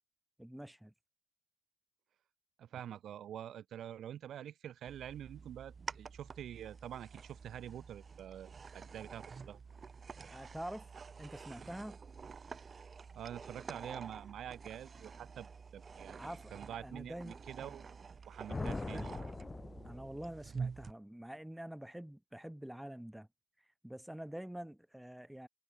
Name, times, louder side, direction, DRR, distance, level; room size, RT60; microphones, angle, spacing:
voice 1, 0.4-0.9 10.3-10.9 11.2-12.0 16.2-17.7 18.7-19.1 19.8-23.3 23.8-25.5, right 1 dB, 5° right, 5.0 m, -46 dB
voice 2, 2.6-9.6 13.1-17.9 18.3-19.2, right 10 dB, 75° right, 4.9 m, -47 dB
sound 1, 4.9-20.9, right 5 dB, 50° right, 5.5 m, -49 dB
sound 2, 18.5-20.5, left 3 dB, 30° left, 5.1 m, -41 dB
hypercardioid pair, 40°, 0 cm